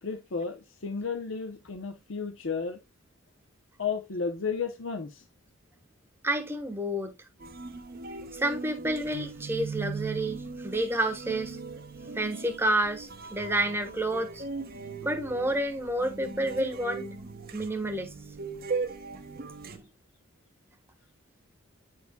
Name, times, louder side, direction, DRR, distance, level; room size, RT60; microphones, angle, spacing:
voice 1, 0.0-2.8 3.8-5.2, left 5 dB, 65° left, 0.7 m, -33 dB
voice 2, 6.2-7.1 8.3-11.6 12.1-14.4 15.0-17.0 17.5-18.1 19.7-19.9, right 1 dB, 10° right, 1.1 m, -29 dB
sound 1, 7.4-19.8, right 4 dB, 45° right, 0.8 m, -39 dB
9.3 x 4.8 x 2.2 m
head